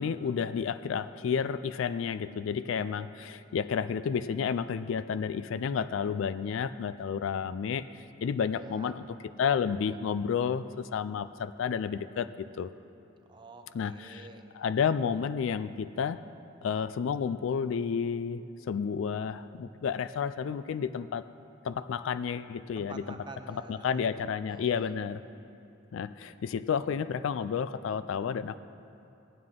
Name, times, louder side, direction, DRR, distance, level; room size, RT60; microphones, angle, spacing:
voice 1, 0.0-7.9 8.2-9.0 9.4-12.7 13.7-14.3 14.5-16.2 16.6-21.3 21.6-23.0 23.7-25.2 25.9-28.6, left 6 dB, 75° left, 14 dB, 0.3 m, -31 dB
voice 2, 8.5-9.0 13.3-14.5 22.7-24.2 24.5-25.0, right 2 dB, 25° right, 5 dB, 0.7 m, -48 dB
16.0 x 9.6 x 3.7 m, 2.6 s
head